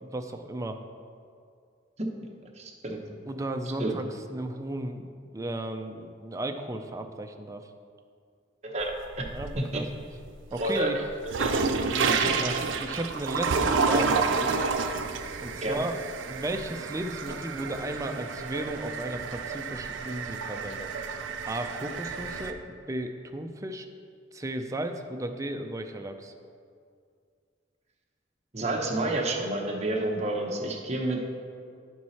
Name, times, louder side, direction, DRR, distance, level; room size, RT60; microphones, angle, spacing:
voice 1, 0.0-0.8 3.2-4.0 4.3-5.1 5.3-7.6 9.2-9.8 10.5-11.0 11.8-14.6 15.4-15.9 16.3-20.9 21.5-22.6 22.9-23.9 24.3-26.3, right 1 dB, 15° right, 5 dB, 0.4 m, -34 dB
voice 2, 2.6-3.0 3.8-4.0 8.6-9.2 9.6-9.9 10.6-10.9 11.4-11.5 12.0-12.3 15.6-15.8 28.5-31.3, right 2 dB, 35° right, 0 dB, 0.9 m, -29 dB
sound 1, 8.8-9.8 10.2-22.5, right 4 dB, 85° right, 0.5 m, -30 dB
10.5 x 4.6 x 4.2 m, 2.2 s
head